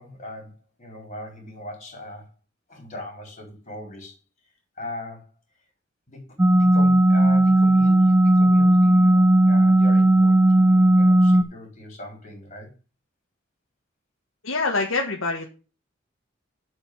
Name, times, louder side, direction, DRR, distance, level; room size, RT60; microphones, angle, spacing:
voice 1, 0.0-2.3 2.7-4.2 4.8-5.3 6.1-6.2 6.5-12.7, left 2 dB, 35° left, 1 dB, 4.5 m, -39 dB
sound 1, 6.4-11.4, right 1 dB, 15° right, 0.4 m, -16 dB
voice 2, 14.4-15.5, left 3 dB, 90° left, 0 dB, 1.5 m, -25 dB
8.6 x 5.1 x 6.1 m, 0.34 s
head